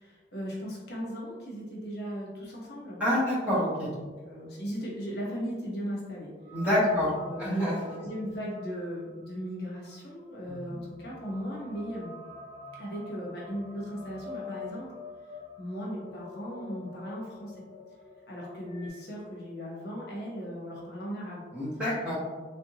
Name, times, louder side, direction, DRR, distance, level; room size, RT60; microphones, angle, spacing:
voice 1, 0.0-3.0 3.8-6.3 6.7-12.1 12.7-14.9 15.6-17.6 18.3-21.4 21.7-21.8, equal, 60° left, -4 dB, 0.9 m, -37 dB
voice 2, 3.0-3.9 6.5-7.1 7.4-8.0 10.5-10.7 21.5-22.2, equal, 10° right, -10 dB, 1.1 m, -27 dB
sound 1, 6.4-18.9, left 4 dB, 30° left, 1.2 m, -47 dB
3.4 x 2.6 x 2.8 m, 1.4 s
head